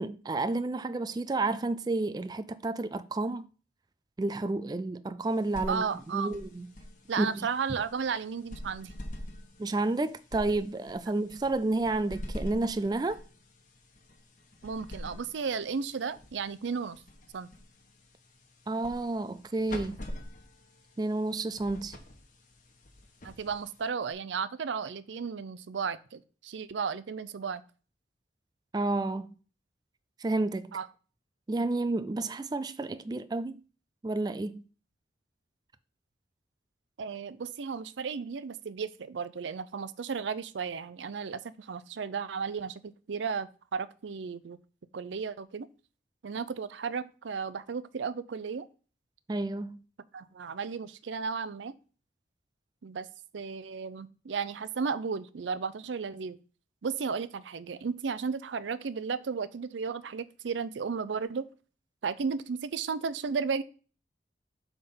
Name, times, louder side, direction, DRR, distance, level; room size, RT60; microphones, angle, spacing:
voice 1, 0.0-3.5 4.2-5.8 6.1-6.7 7.2-7.3 9.6-13.2 18.7-20.0 21.0-22.0 28.7-29.3 30.2-30.8 31.5-33.6 34.0-34.6 49.3-49.8, right 2 dB, 20° right, 0.3 m, -30 dB
sound 1, 5.2-24.1, left 1 dB, 45° left, 1.2 m, -46 dB
voice 2, 5.7-6.3 7.1-8.9 14.6-17.0 17.3-17.5 23.2-27.6 30.7-30.9 37.0-44.6 44.9-45.7 46.2-48.7 50.1-51.7 52.8-53.1 53.3-56.4 56.8-61.5 62.0-63.6, right 5 dB, 90° right, 0.5 m, -34 dB
7.8 x 3.6 x 5.5 m
head